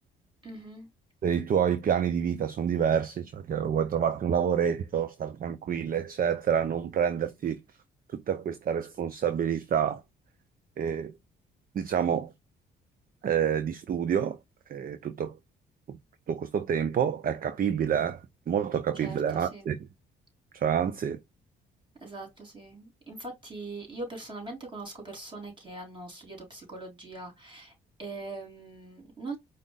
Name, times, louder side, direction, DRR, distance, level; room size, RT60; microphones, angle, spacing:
voice 1, 0.4-0.9 18.9-19.7 22.0-27.7 28.0-29.4, right 2 dB, 25° right, 3.7 m, -41 dB
voice 2, 1.2-7.6 8.1-10.0 10.8-11.1 11.7-12.3 13.2-14.4 14.7-15.4 15.9-16.0 16.3-18.2 18.5-19.8 20.5-21.2, right 8 dB, 45° right, 0.6 m, -28 dB
4.9 x 2.6 x 3.9 m
cardioid pair, 90°, 20 cm